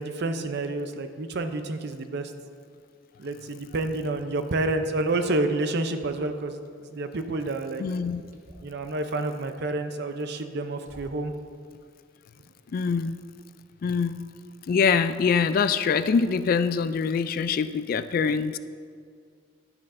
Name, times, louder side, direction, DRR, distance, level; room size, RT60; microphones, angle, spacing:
voice 1, 0.0-2.3 3.2-6.6 6.9-7.8 8.6-11.3, right 2 dB, 60° right, 8 dB, 0.6 m, -29 dB
voice 2, 7.8-8.2 12.7-13.2 13.8-14.2 14.7-18.6, left 5 dB, 50° left, 12 dB, 0.3 m, -24 dB
sound 1, 8.3-8.8 10.1-10.2 10.8-11.4, equal, 45° right, 1.2 m, -49 dB
10.5 x 9.6 x 2.6 m, 2.1 s
head